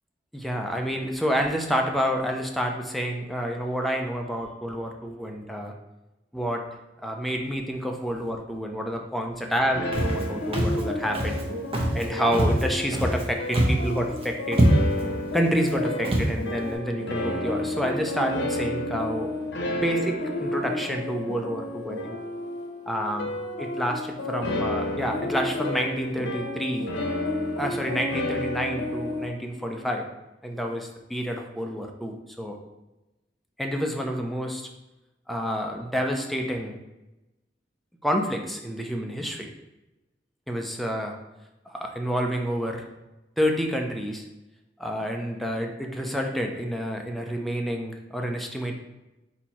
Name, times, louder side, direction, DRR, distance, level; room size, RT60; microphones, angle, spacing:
voice 1, 0.3-5.7 6.3-6.6 7.0-11.4 11.9-14.6 15.3-19.3 19.7-20.1 20.4-22.1 22.9-23.3 23.6-26.9 27.6-30.1 30.4-32.6 33.6-34.7 35.3-36.8 38.0-39.5 40.5-41.2 41.7-42.8 43.4-44.2 44.8-48.7, equal, ahead, 1 dB, 0.5 m, -28 dB
sound 1, 9.7-29.3, left 1 dB, 85° left, 0.8 m, -31 dB
Walk footsteps, 9.9-10.2 10.5-10.8 11.1-11.4 11.7-12.0 12.3-13.2 13.5-13.9 14.2-14.3 14.5-15.0 15.6-15.7 16.0-16.3, right 1 dB, 35° right, 0.8 m, -23 dB
4.4 x 2.8 x 4.2 m, 1.0 s
head